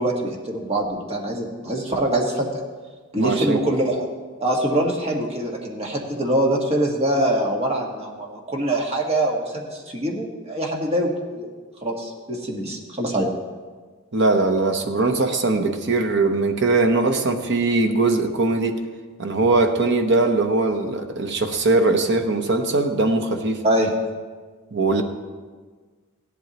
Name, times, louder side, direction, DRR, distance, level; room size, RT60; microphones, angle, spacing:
voice 1, 0.0-2.5 3.1-4.1 4.4-11.5 11.8-13.3 23.6-23.9, right 1 dB, 30° right, -1 dB, 1.5 m, -24 dB
voice 2, 3.2-3.6 14.1-18.8 19.2-23.6 24.7-25.0, right 3 dB, 55° right, 5 dB, 0.9 m, -20 dB
16.0 x 11.0 x 3.0 m, 1.5 s
head